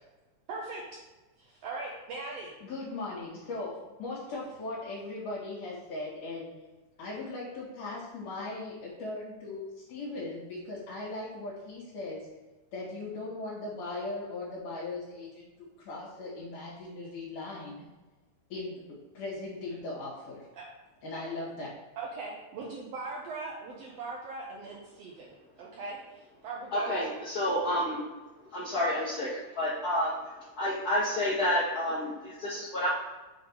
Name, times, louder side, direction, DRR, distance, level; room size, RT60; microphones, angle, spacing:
voice 1, 0.5-0.8 1.4-2.5 20.6-20.7 22.0-27.1, right 3 dB, 70° right, -3 dB, 1.7 m, -40 dB
voice 2, 2.6-6.5 7.0-12.3 12.7-15.5 15.8-17.8 18.5-20.5 21.0-21.8, left 2 dB, 80° left, -8 dB, 3.2 m, -38 dB
voice 3, 26.7-28.0 28.5-32.9, left 1 dB, 45° left, -9 dB, 1.3 m, -30 dB
6.4 x 3.6 x 4.7 m, 1.1 s
omnidirectional pair, 3.5 m